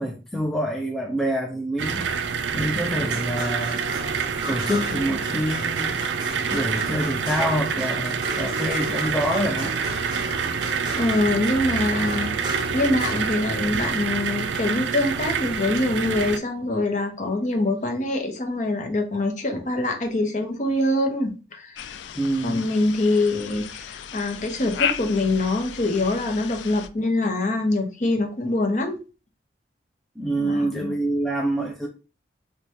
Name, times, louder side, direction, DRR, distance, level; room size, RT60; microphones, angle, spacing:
voice 1, 0.0-2.0 2.5-3.8 4.5-6.0 6.5-9.8 22.2-22.7 30.2-31.9, right 1 dB, ahead, 0.3 m, -26 dB
sound 1, 1.8-16.4, right 6 dB, 90° right, 0.4 m, -27 dB
sound 2, 2.9-15.2 16.9-17.0, right 1 dB, 25° right, 0.8 m, -35 dB
voice 2, 11.0-12.3 12.7-21.9 22.4-29.0 30.4-30.9, left 2 dB, 45° left, 0.7 m, -24 dB
sound 3, 21.7-26.9, left 9 dB, 85° left, 0.3 m, -34 dB
4.6 x 2.2 x 2.7 m
head